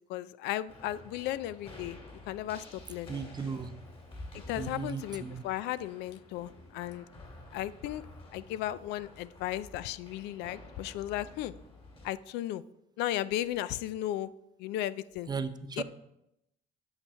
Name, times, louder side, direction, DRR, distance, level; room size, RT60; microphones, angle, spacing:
voice 1, 0.1-2.0 2.3-3.2 4.5-7.0 7.5-8.0 8.3-11.5 12.0-12.6 13.0-14.3 14.6-15.3 15.8-15.9, left 13 dB, 90° left, 17 dB, 0.4 m, -35 dB
sound 1, 0.7-12.1, left 2 dB, 30° left, 2.3 m, -50 dB
voice 2, 3.1-3.8 4.6-5.4 15.3-15.8, right 5 dB, 25° right, 10 dB, 0.7 m, -36 dB
8.8 x 6.5 x 5.6 m, 0.84 s
cardioid pair, 110°, 17 cm